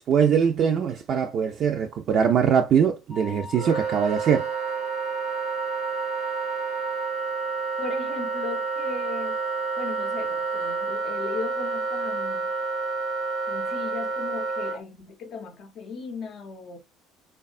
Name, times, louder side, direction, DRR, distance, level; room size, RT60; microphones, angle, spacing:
voice 1, 0.0-4.5, right 7 dB, 55° right, 0.3 m, -22 dB
Wind instrument woodwind instrument, 3.1-7.3, left 4 dB, 10° left, 0.6 m, -39 dB
Wind instrument woodwind instrument 2, 3.5-14.8, right 4 dB, 85° right, 0.8 m, -29 dB
voice 2, 7.8-9.4 9.8-12.5 13.5-16.8, left 4 dB, 55° left, 0.5 m, -37 dB
3.4 x 2.2 x 2.3 m
supercardioid pair, 85°, 0 cm